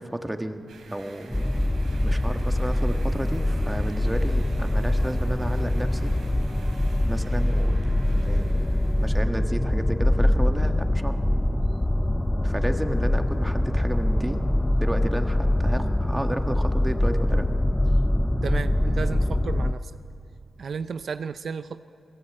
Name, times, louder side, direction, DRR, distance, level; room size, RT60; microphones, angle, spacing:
voice 1, 0.0-1.4 2.0-6.1 7.1-7.8 8.1-8.6 9.0-11.2 12.4-14.4 14.8-17.5, right 1 dB, 10° right, 6 dB, 1.6 m, -32 dB
sound 1, 0.7-9.2, right 4 dB, 90° right, 3.4 m, -50 dB
sound 2, 1.3-19.7, left 1 dB, 10° left, 0.7 m, -23 dB
voice 2, 18.4-19.9 20.6-21.8, right 6 dB, 65° right, 11 dB, 0.6 m, -33 dB
29.0 x 19.5 x 8.8 m, 2.7 s
cardioid pair, 90°, 0 cm